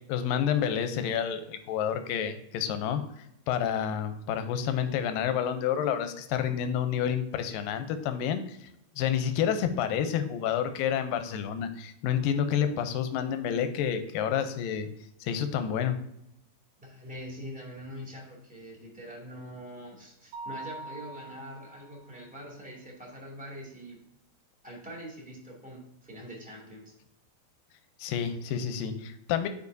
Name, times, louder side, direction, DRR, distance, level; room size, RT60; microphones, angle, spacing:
voice 1, 0.1-3.0 3.5-8.6 9.0-14.9 15.2-16.0 28.0-29.5, left 8 dB, 80° left, 8 dB, 2.2 m, -29 dB
voice 2, 16.8-24.0 24.6-26.9, equal, 5° right, -4 dB, 1.4 m, -44 dB
Mallet percussion, 20.3-22.1, right 2 dB, 70° right, 1.7 m, -42 dB
10.5 x 5.0 x 2.7 m, 0.81 s
omnidirectional pair, 4.3 m